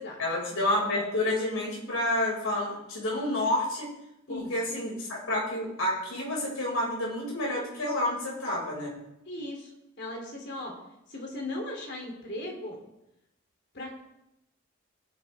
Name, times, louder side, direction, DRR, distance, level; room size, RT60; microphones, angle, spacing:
voice 1, 0.2-3.9 4.3-8.9, left 1 dB, 75° left, -3 dB, 5.5 m, -29 dB
voice 2, 9.2-10.8 11.1-12.8 13.7-14.0, left 1 dB, 55° left, 1 dB, 3.0 m, -37 dB
17.5 x 10.0 x 3.5 m, 0.86 s
head